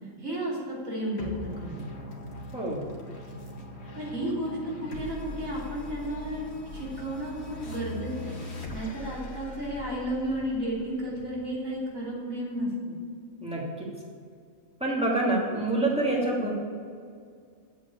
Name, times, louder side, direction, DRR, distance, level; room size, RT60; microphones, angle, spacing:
voice 1, 0.2-1.9 3.9-13.0, right 1 dB, 70° right, -5 dB, 3.7 m, -33 dB
sound 1, 1.2-12.0, left 1 dB, 50° left, 1.7 m, -41 dB
voice 2, 2.5-2.8 13.4-13.9 14.8-16.5, right 2 dB, 5° right, -4 dB, 2.5 m, -27 dB
8.5 x 8.0 x 8.5 m, 2.1 s
omnidirectional pair, 1.5 m